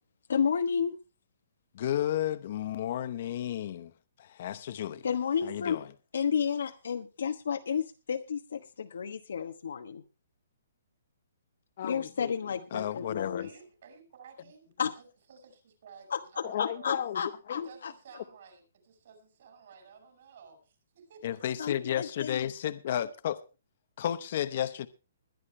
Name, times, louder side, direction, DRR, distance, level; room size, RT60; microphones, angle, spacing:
voice 1, 0.3-0.9 5.0-5.8 6.1-10.0 11.8-13.5 14.8-14.9 16.1-17.9 21.6-22.4, left 7 dB, 75° left, 1.1 m, -31 dB
voice 2, 1.7-5.1 5.4-5.9 11.8-13.5 16.4-17.7 21.2-23.4 24.0-24.9, left 11 dB, 40° left, 0.8 m, -33 dB
voice 3, 13.4-14.7 15.0-16.9 17.5-21.9, right 6 dB, 50° right, 5.5 m, -54 dB
21.0 x 10.5 x 3.3 m
hypercardioid pair, 175°, 0 cm